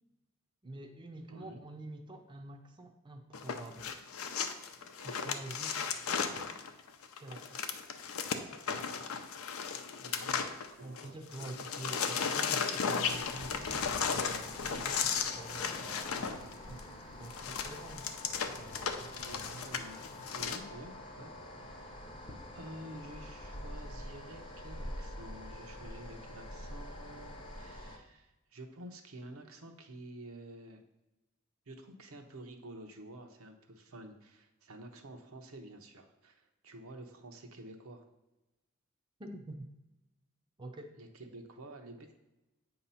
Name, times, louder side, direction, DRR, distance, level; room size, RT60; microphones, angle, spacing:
voice 1, 0.6-3.9 5.0-5.8 6.1-6.5 7.2-7.6 10.8-16.8 17.1-18.1 18.6-19.8 39.2-39.7 40.6-40.9, right 2 dB, 20° right, 3 dB, 0.5 m, -47 dB
voice 2, 1.3-1.6 10.0-11.5 19.1-20.1 20.3-22.1 22.5-30.8 31.7-38.0 41.0-42.2, right 1 dB, 80° right, 4 dB, 0.8 m, -50 dB
sound 1, 3.3-11.1 11.3-20.6, left 6 dB, 80° left, 0.6 m, -35 dB
sound 2, 13.0-28.0, left 1 dB, 25° left, 0.7 m, -46 dB
8.1 x 2.9 x 5.5 m, 1.0 s
head